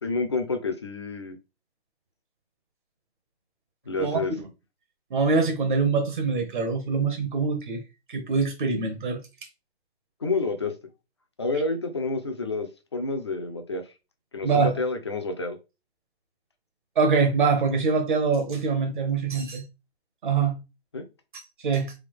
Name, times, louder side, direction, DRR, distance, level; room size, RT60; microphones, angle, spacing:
voice 1, 0.0-1.4 3.9-4.3 10.2-10.7 11.4-13.8 14.3-15.6 20.9-21.0, left 3 dB, 25° left, 0.4 m, -29 dB
voice 2, 5.1-7.8 8.1-9.2 14.4-14.7 17.0-19.6 20.2-20.6 21.6-21.9, right 4 dB, 50° right, 0.9 m, -24 dB
3.4 x 2.4 x 3.6 m
hypercardioid pair, 150°, 32 cm